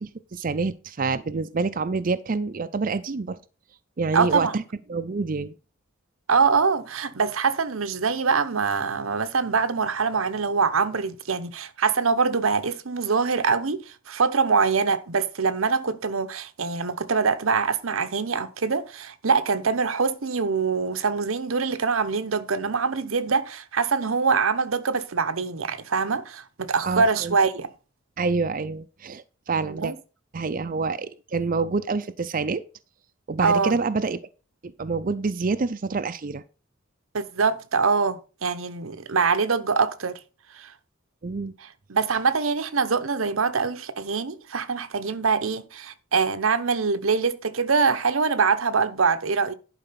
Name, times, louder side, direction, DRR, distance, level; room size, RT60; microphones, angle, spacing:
voice 1, 0.3-3.4 4.0-4.6 4.9-5.5 26.8-27.4 28.2-29.9 30.3-32.6 33.3-34.2 34.6-36.4 41.2-41.5, right 4 dB, 45° right, 0.5 m, -27 dB
voice 2, 4.1-4.6 6.3-27.7 29.6-30.0 33.4-33.8 37.1-40.2 40.5-40.7 41.6-49.5, right 5 dB, 90° right, 0.9 m, -24 dB
11.0 x 4.9 x 5.7 m
head